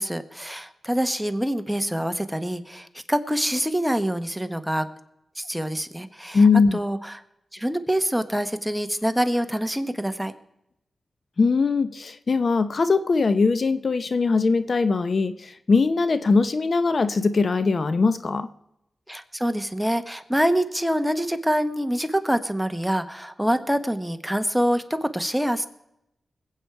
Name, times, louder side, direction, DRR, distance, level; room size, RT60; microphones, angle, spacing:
voice 1, 0.0-4.9 5.4-7.2 7.5-10.3 19.1-25.7, equal, 5° right, 9 dB, 1.3 m, -25 dB
voice 2, 6.3-6.8 11.4-18.5, left 4 dB, 60° left, 12 dB, 0.7 m, -21 dB
20.5 x 8.4 x 4.6 m, 0.82 s
cardioid pair, 50°, 0 cm